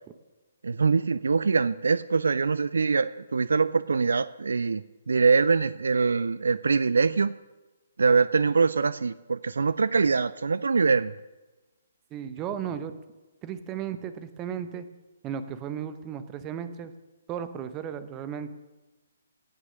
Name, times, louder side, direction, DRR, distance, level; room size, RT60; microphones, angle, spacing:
voice 1, 0.6-7.3 8.0-11.1, right 4 dB, 65° right, 17 dB, 0.3 m, -23 dB
voice 2, 12.1-13.0 13.4-14.8 15.2-16.9 17.3-18.5, right 8 dB, 20° right, 12 dB, 0.9 m, -35 dB
17.0 x 6.4 x 6.4 m, 1.2 s
figure-of-eight pair, 130°, 0 cm